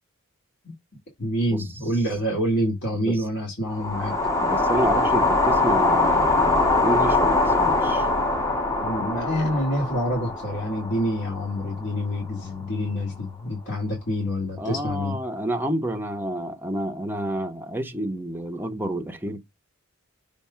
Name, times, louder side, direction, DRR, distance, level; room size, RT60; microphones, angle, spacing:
voice 1, 1.2-4.2 8.8-15.2, equal, 55° left, 2.4 m, -27 dB
sound 1, 3.7-12.0, left 2 dB, 15° left, 1.1 m, -23 dB
voice 2, 4.4-8.1 14.6-19.4, right 1 dB, 10° right, 0.9 m, -29 dB
6.9 x 2.7 x 5.5 m
head